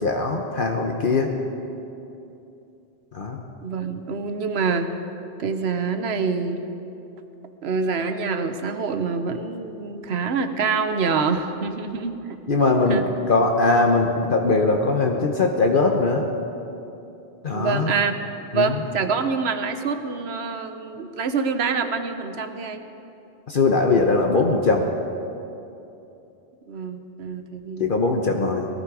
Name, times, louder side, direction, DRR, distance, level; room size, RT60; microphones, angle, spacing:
voice 1, 0.0-1.3 3.1-3.4 12.5-13.0 13.3-16.3 17.4-17.9 18.5-18.8 23.5-24.9 27.8-28.7, left 3 dB, 55° left, 2 dB, 1.0 m, -21 dB
voice 2, 3.6-5.0 5.4-6.7 7.6-12.2 12.9-13.0 17.5-18.2 18.5-22.8 26.7-27.9, right 5 dB, 80° right, 9 dB, 1.1 m, -26 dB
18.5 x 13.5 x 4.9 m, 2.9 s
omnidirectional pair, 1.1 m